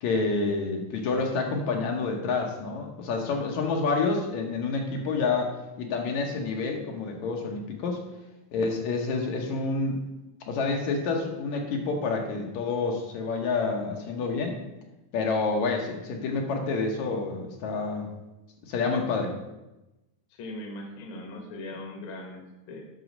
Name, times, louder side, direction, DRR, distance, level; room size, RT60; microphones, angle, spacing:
voice 1, 0.0-8.0 8.5-10.0 10.5-14.6 15.1-18.1 18.6-19.3, left 4 dB, 70° left, 2 dB, 2.2 m, -28 dB
voice 2, 20.3-22.9, left 1 dB, 55° left, 3 dB, 1.7 m, -40 dB
7.9 x 6.1 x 5.2 m, 1.0 s
omnidirectional pair, 3.5 m